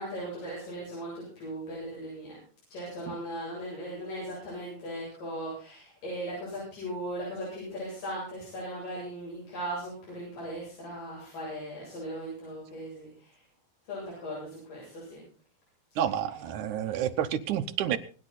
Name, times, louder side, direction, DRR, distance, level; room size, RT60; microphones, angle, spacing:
voice 1, 0.0-2.4 2.7-13.3 13.9-15.2, equal, 70° left, -5 dB, 9.6 m, -38 dB
voice 2, 16.0-18.0, right 10 dB, 70° right, 9 dB, 2.2 m, -29 dB
25.5 x 10.0 x 4.2 m, 0.38 s
omnidirectional pair, 4.0 m